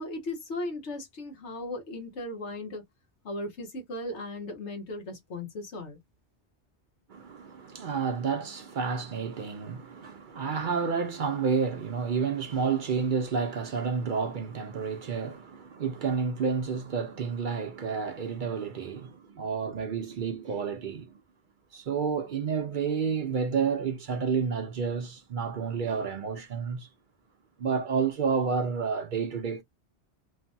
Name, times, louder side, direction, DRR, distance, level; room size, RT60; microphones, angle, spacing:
voice 1, 0.0-2.8 3.2-6.0, left 2 dB, 85° left, 1.4 m, -37 dB
voice 2, 7.1-21.1 21.7-26.9 27.6-29.6, right 5 dB, 55° right, 0.6 m, -30 dB
3.2 x 2.1 x 2.6 m
omnidirectional pair, 1.1 m